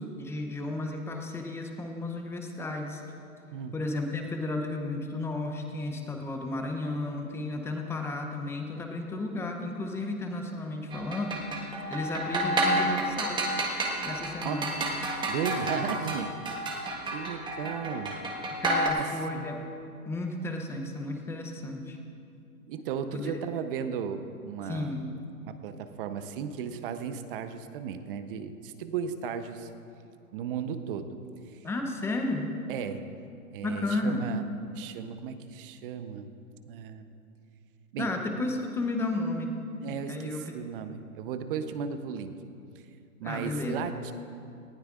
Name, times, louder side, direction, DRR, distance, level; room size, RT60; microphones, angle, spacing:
voice 1, 0.0-3.0 3.7-11.4 11.9-13.4 14.0-14.7 18.6-19.6 20.1-22.0 23.1-23.4 24.7-25.1 31.6-32.5 33.6-34.3 38.0-39.5 40.1-40.5 43.2-43.9, left 2 dB, 5° left, 3 dB, 0.6 m, -33 dB
sound 1, 10.9-18.9, right 1 dB, 10° right, 1.3 m, -30 dB
voice 2, 15.3-16.3 17.1-18.1 19.0-19.5 22.7-24.9 25.4-29.7 30.3-31.2 32.7-33.0 33.5-34.4 34.7-36.3 36.7-37.1 37.9-38.1 39.8-42.4 43.2-44.1, right 7 dB, 40° right, 9 dB, 0.8 m, -35 dB
19.0 x 15.0 x 2.5 m, 2.5 s
hypercardioid pair, 135°, 43 cm